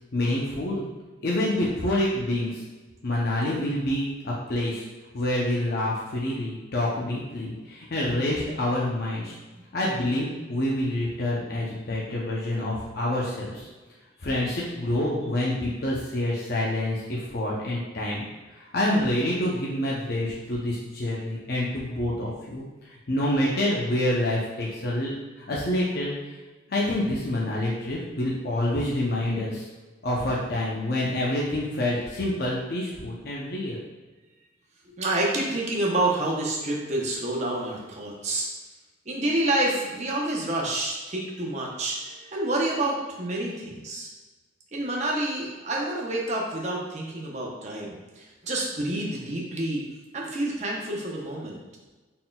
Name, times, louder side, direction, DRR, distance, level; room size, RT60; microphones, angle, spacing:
voice 1, 0.1-0.9 1.2-2.6 3.0-4.8 5.1-9.4 9.7-13.7 14.2-18.2 18.5-22.7 23.1-25.1 25.4-26.1 26.7-29.6 30.0-33.8, left 1 dB, 55° left, -4 dB, 0.6 m, -27 dB
voice 2, 34.9-38.5 39.1-44.1 44.7-49.8 50.1-51.6, right 1 dB, 40° right, -2 dB, 0.7 m, -28 dB
4.1 x 3.8 x 2.2 m, 1.2 s
head